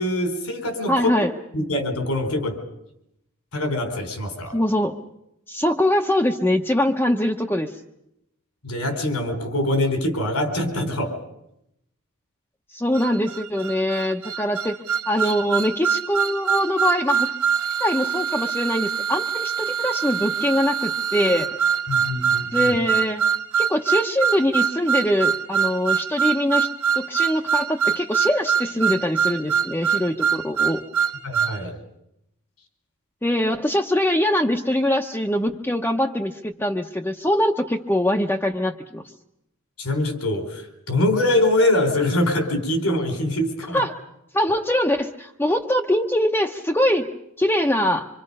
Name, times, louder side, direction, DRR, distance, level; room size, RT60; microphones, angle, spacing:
voice 1, 0.0-1.1 1.5-2.6 3.5-4.5 8.6-11.2 21.9-22.7 31.2-31.8 39.8-43.9, left 1 dB, 85° left, 6 dB, 4.1 m, -23 dB
voice 2, 0.9-1.3 4.5-5.0 5.5-7.7 12.7-14.8 15.1-17.3 17.8-21.5 22.5-23.2 23.6-26.7 27.0-30.8 33.2-39.0 43.7-43.9 44.3-48.1, left 1 dB, 10° left, 0 dB, 0.8 m, -23 dB
sound 1, 12.9-31.6, right 7 dB, 90° right, 1.0 m, -24 dB
25.5 x 25.5 x 5.4 m, 0.84 s
head